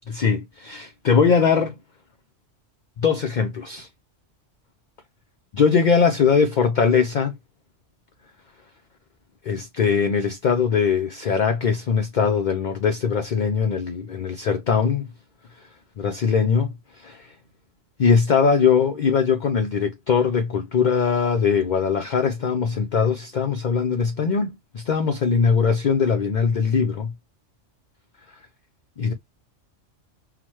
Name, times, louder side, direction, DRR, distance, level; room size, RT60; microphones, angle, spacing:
voice 1, 0.1-1.8 3.0-3.9 5.5-7.3 9.4-15.1 16.0-17.3 18.0-27.1 29.0-29.1, left 6 dB, 55° left, 0.5 m, -21 dB
5.8 x 2.2 x 3.0 m
omnidirectional pair, 1.3 m